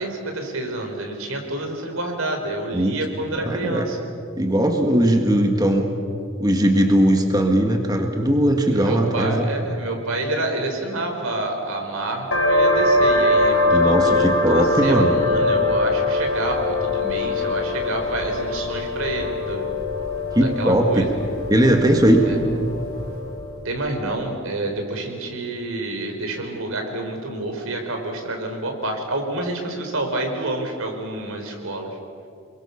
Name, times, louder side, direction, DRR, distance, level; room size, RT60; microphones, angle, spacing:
voice 1, 0.0-4.0 8.7-19.7 20.4-21.2 22.2-22.4 23.6-32.0, right 2 dB, 85° right, 3 dB, 4.4 m, -28 dB
voice 2, 3.4-3.8 4.4-5.9 6.4-9.5 13.7-15.2 20.4-21.1 21.5-22.3, right 1 dB, 20° right, 3 dB, 1.7 m, -19 dB
sound 1, 12.3-23.6, left 2 dB, 85° left, 4.6 m, -22 dB
28.5 x 22.5 x 7.1 m, 2.4 s
head